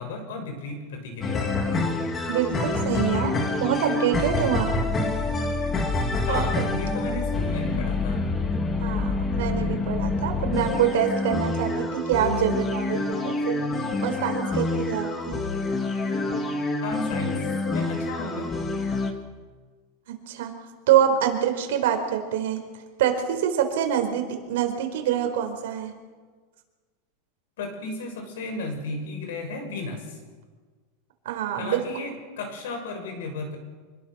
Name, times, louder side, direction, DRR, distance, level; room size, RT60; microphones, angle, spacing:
voice 1, 0.0-2.0 6.2-8.2 16.8-18.5 27.6-30.2 31.5-33.6, left 3 dB, 80° left, 5 dB, 6.6 m, -34 dB
sound 1, 1.2-19.1, left 3 dB, 15° left, 1.8 m, -27 dB
voice 2, 2.3-4.8 6.3-6.7 8.8-13.7 14.0-15.4 20.1-20.6 20.9-22.7 23.0-25.9 31.2-31.8, right 10 dB, 70° right, 4 dB, 4.6 m, -25 dB
26.0 x 21.5 x 6.3 m, 1.5 s
supercardioid pair, 170°, 0 cm